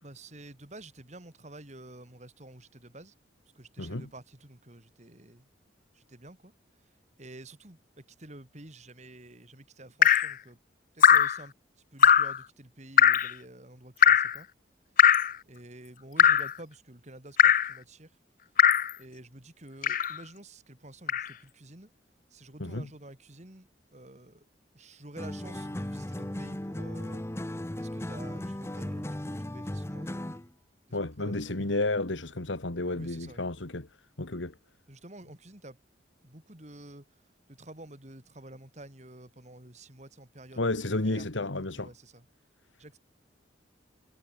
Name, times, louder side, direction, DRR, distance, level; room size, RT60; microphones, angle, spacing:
voice 1, 0.0-3.1 3.5-5.5 5.9-10.6 10.9-14.5 14.9-15.0 15.5-18.2 18.4-18.6 19.0-21.9 22.3-24.4 24.7-27.2 27.8-30.4 30.9-31.8 32.9-33.5 34.9-35.8 36.2-42.3 42.8-43.0, right 1 dB, 40° right, 2.9 m, -50 dB
Drip, 10.0-10.3 11.0-11.4 12.0-12.4 13.0-13.3 14.0-14.4 15.0-15.4 16.2-16.5 17.4-17.7 18.6-18.9 19.8-20.2 21.1-21.3, left 9 dB, 45° left, 0.5 m, -20 dB
sound 1, 25.2-30.5, left 1 dB, 15° left, 0.7 m, -36 dB
voice 2, 30.9-33.9 34.2-34.5 40.6-41.9, left 2 dB, 90° left, 2.1 m, -31 dB
head